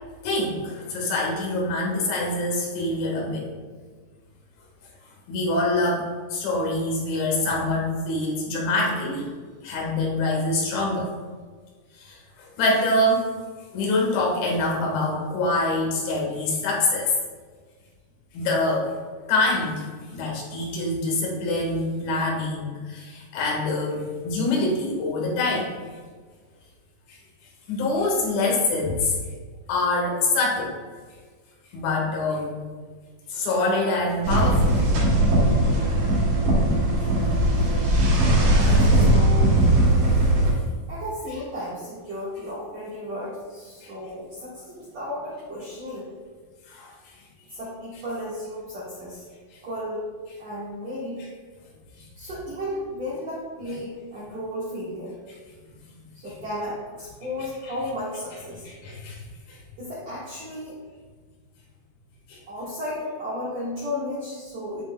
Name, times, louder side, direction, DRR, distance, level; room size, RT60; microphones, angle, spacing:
voice 1, 0.2-3.5 5.3-6.1 6.3-9.3 9.6-11.1 11.9-13.3 13.7-17.1 18.3-18.9 19.2-19.9 20.1-25.7 27.1-27.2 27.7-29.2 29.7-30.8 31.7-32.6 33.3-34.8 43.8-43.9 46.7-47.2 49.5-49.6 58.7-59.6 62.3-62.4, left 2 dB, 80° left, -2 dB, 3.7 m, -25 dB
sound 1, 34.2-40.5, right 1 dB, 75° right, 4.4 m, -19 dB
voice 2, 38.5-39.5 40.1-40.3 40.9-46.1 47.5-49.3 49.6-50.1 50.4-51.2 52.1-55.1 56.1-58.7 59.8-60.8 62.5-64.8, left 1 dB, 60° right, -10 dB, 1.8 m, -34 dB
12.0 x 4.5 x 2.2 m, 1.5 s
omnidirectional pair, 5.3 m